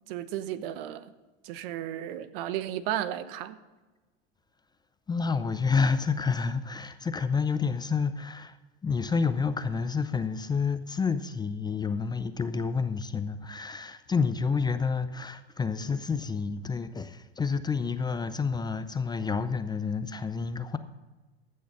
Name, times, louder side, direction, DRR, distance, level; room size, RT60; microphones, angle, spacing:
voice 1, 0.1-1.1 1.4-3.6, right 12 dB, 65° right, 1.0 m, -34 dB
voice 2, 5.1-8.6 8.8-20.8, left 5 dB, 15° left, 0.5 m, -29 dB
15.5 x 6.5 x 5.4 m
hypercardioid pair, 105°, 31 cm